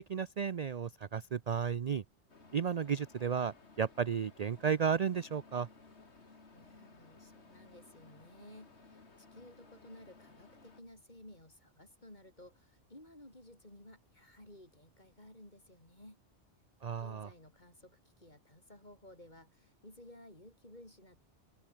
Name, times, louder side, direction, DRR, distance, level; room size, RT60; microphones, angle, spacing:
voice 1, 0.1-2.0 2.5-5.7 16.8-17.3, right 7 dB, 45° right, 0.6 m, -33 dB
sound 1, 2.3-10.8, left 3 dB, 70° left, 2.8 m, -59 dB
voice 2, 6.5-16.2 17.0-21.2, left 1 dB, 40° left, 6.7 m, -56 dB
open air
omnidirectional pair, 1.2 m